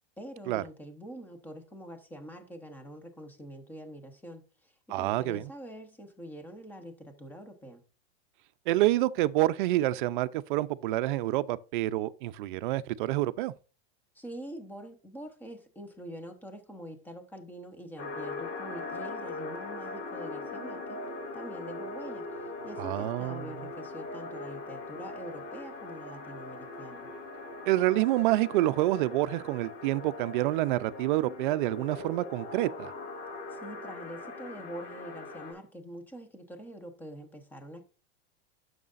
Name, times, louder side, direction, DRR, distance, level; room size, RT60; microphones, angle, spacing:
voice 1, 0.2-7.8 14.1-21.1 21.3-27.1 33.5-37.8, equal, 5° left, 0.9 m, -45 dB
voice 2, 4.9-5.4 8.7-13.5 22.8-23.5 27.7-32.9, right 16 dB, 50° right, 0.5 m, -27 dB
sound 1, 18.0-35.5, left 2 dB, 60° left, 4.0 m, -40 dB
10.5 x 6.6 x 2.5 m
supercardioid pair, 155°, 32 cm